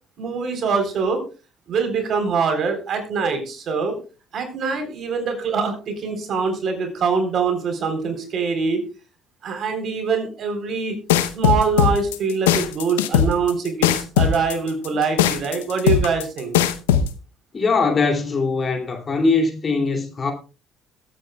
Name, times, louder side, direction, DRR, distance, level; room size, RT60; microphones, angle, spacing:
voice 1, 0.2-1.2 1.7-3.9 4.3-8.9 9.4-11.0 11.3-16.6, right 5 dB, 55° right, 3.8 m, -24 dB
sound 1, 11.1-17.1, left 9 dB, 90° left, 0.8 m, -18 dB
voice 2, 17.5-20.3, left 4 dB, 40° left, 2.8 m, -21 dB
22.0 x 8.7 x 2.3 m
hypercardioid pair, 60°, 0 cm